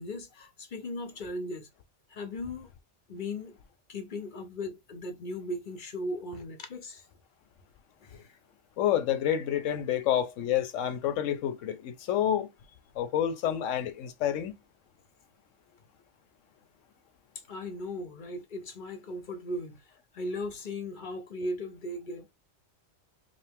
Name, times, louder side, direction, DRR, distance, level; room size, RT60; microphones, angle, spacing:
voice 1, 0.0-1.7 2.1-2.7 3.1-3.6 3.9-7.0 8.0-8.4 17.5-19.9 20.1-22.3, left 1 dB, 50° left, 0.7 m, -37 dB
voice 2, 8.8-12.5 13.0-14.5, left 10 dB, 80° left, 1.0 m, -28 dB
5.1 x 2.0 x 3.4 m
omnidirectional pair, 1.3 m